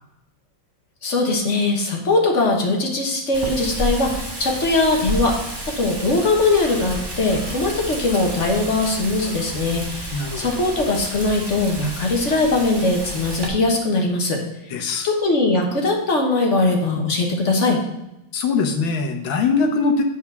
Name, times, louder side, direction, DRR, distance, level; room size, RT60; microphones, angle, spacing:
voice 1, 1.0-5.4 5.7-14.4 15.0-17.8, left 2 dB, 40° left, 1 dB, 1.5 m, -20 dB
Wind, 3.3-13.5, equal, 15° right, 1.2 m, -31 dB
voice 2, 10.1-10.6 14.7-15.1 18.3-20.0, left 4 dB, 85° left, 5 dB, 1.7 m, -22 dB
8.3 x 4.9 x 5.7 m, 0.90 s
omnidirectional pair, 2.1 m